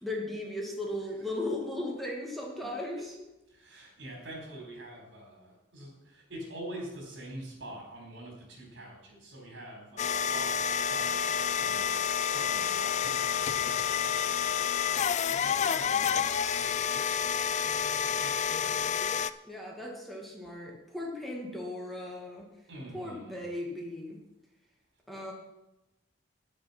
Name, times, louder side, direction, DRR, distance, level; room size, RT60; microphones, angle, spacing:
voice 1, 0.0-3.2 19.4-22.5 22.9-24.2 25.1-25.3, left 1 dB, ahead, -2 dB, 1.9 m, -37 dB
voice 2, 3.5-11.8 12.3-14.4 15.3-17.7 18.0-18.9 22.7-23.4, right 1 dB, 80° right, 0 dB, 4.4 m, -46 dB
sound 1, 10.0-19.3, left 8 dB, 40° left, 0.4 m, -29 dB
9.4 x 9.0 x 5.9 m, 0.94 s
head